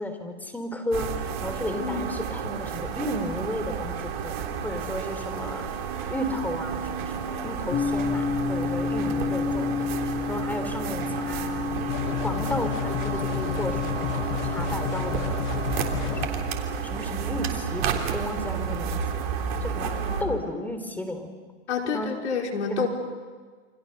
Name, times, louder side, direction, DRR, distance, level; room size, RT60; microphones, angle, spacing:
voice 1, 0.0-4.0 4.2-5.7 6.1-9.9 10.3-11.8 12.2-15.4 16.1-16.4 16.8-19.3 19.6-21.3 21.9-22.1 22.7-22.9, left 1 dB, 5° left, 6 dB, 3.7 m, -33 dB
sound 1, 0.9-20.2, right 7 dB, 60° right, 3.5 m, -31 dB
voice 2, 1.8-2.2 19.9-20.4 21.7-22.9, left 5 dB, 80° left, 2 dB, 5.0 m, -29 dB
sound 2, 7.7-17.9, left 5 dB, 25° left, 2.0 m, -32 dB
sound 3, 11.9-16.3, left 15 dB, 55° left, 1.2 m, -31 dB
29.0 x 26.0 x 6.8 m, 1.5 s
hypercardioid pair, 120°, 34 cm